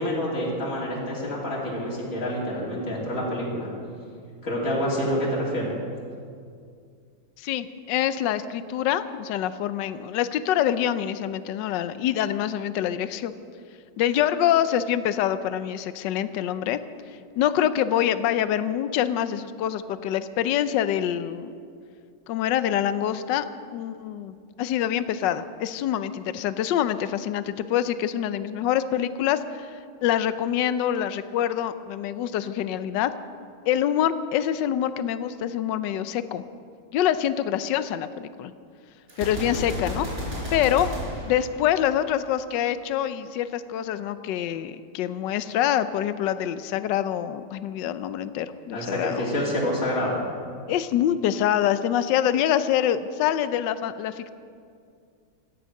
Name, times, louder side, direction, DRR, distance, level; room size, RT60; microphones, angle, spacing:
voice 1, 0.0-3.7 4.4-5.7 39.4-39.5 48.7-50.2, equal, 45° left, -5 dB, 3.4 m, -27 dB
voice 2, 7.4-13.3 14.0-16.8 17.4-21.5 22.3-23.5 23.7-33.1 33.7-36.4 36.9-38.5 39.2-40.1 40.5-40.9 41.2-49.4 50.7-54.3, left 10 dB, 75° left, 12 dB, 1.3 m, -25 dB
Gunshot gunfire, 39.1-42.2, equal, 30° right, 4.3 m, -33 dB
17.0 x 13.0 x 6.5 m, 2.3 s
omnidirectional pair, 2.0 m